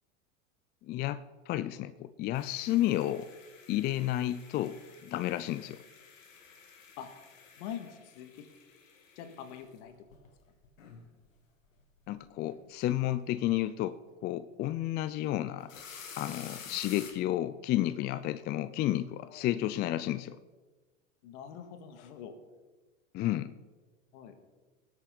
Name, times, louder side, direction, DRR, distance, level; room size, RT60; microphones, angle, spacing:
voice 1, 0.9-3.3 3.7-5.8 12.1-15.7 16.2-20.4 23.1-23.5, left 14 dB, 25° left, 14 dB, 0.3 m, -31 dB
sound 1, 2.3-11.3 11.7-12.2 12.5-13.0 13.3-13.4 15.5-17.1, left 6 dB, 85° left, 2.0 m, -51 dB
voice 2, 7.6-8.3 9.2-9.9 18.1-18.2 19.3-19.5 21.2-22.3 24.1-24.4, left 9 dB, 60° left, 7 dB, 2.0 m, -44 dB
19.0 x 8.4 x 3.9 m, 1.3 s
hypercardioid pair, 95°, 39 cm